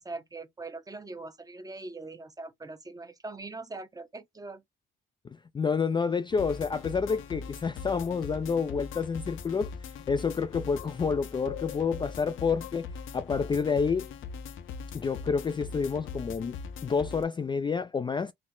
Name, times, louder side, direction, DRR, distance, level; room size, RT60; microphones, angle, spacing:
voice 1, 0.0-4.6, right 3 dB, 20° right, 0.8 m, -42 dB
voice 2, 5.5-9.7 10.1-12.9 13.1-14.1 14.9-16.5 16.8-18.3, left 5 dB, 25° left, 0.3 m, -29 dB
sound 1, 6.3-17.2, left 6 dB, 80° left, 0.8 m, -40 dB
4.2 x 2.0 x 3.7 m
cardioid pair, 90°, 20 cm